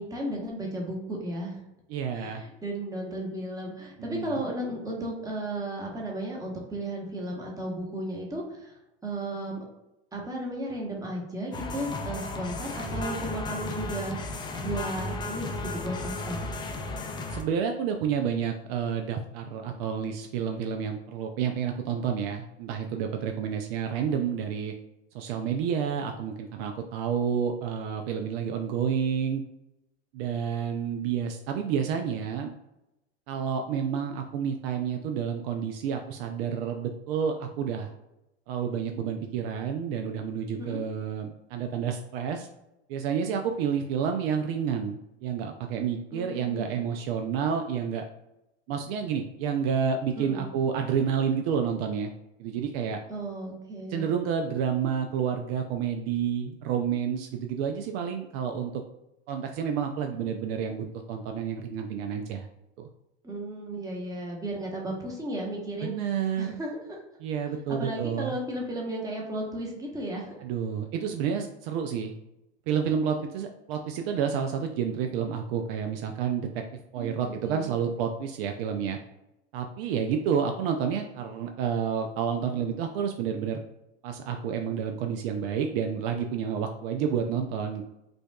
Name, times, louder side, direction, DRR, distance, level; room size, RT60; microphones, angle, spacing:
voice 1, 0.0-1.6 2.1-8.8 9.0-9.6 10.1-16.4 40.6-40.8 46.1-46.7 50.2-50.4 53.1-54.1 63.2-65.9 66.4-66.7 67.7-70.4 77.0-77.7, right 1 dB, 10° right, -1 dB, 0.9 m, -34 dB
voice 2, 1.9-2.4 4.0-4.4 17.3-24.7 25.1-29.4 30.1-32.5 33.3-37.9 38.5-42.5 42.9-48.0 48.7-52.1 52.4-53.0 53.9-58.8 59.3-62.5 62.8-62.9 65.8-66.6 67.2-68.4 70.4-72.1 72.7-76.5 76.9-79.0 79.5-83.6 84.0-87.8, right 7 dB, 60° right, 4 dB, 0.5 m, -29 dB
sound 1, 11.5-17.4, left 2 dB, 15° left, 0.3 m, -34 dB
4.9 x 2.3 x 2.3 m, 0.89 s
hypercardioid pair, 100°, 33 cm